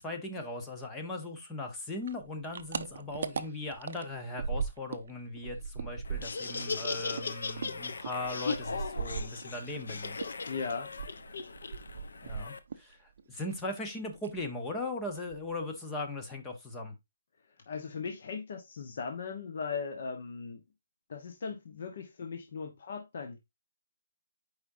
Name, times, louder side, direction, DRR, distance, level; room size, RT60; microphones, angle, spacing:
voice 1, 0.0-10.2 12.2-16.9, left 2 dB, 10° left, 0.8 m, -38 dB
sound 1, 2.0-5.1 5.4-9.8 10.2-12.9 13.2-13.9 14.2-14.4 14.8-14.9 15.2-15.7, right 5 dB, 50° right, 0.6 m, -39 dB
Laughter, 6.0-12.6, left 4 dB, 80° left, 0.9 m, -38 dB
voice 2, 10.5-10.9 17.7-20.6 21.1-23.4, left 5 dB, 45° left, 1.0 m, -38 dB
8.4 x 4.9 x 2.6 m
hypercardioid pair, 175°, 0 cm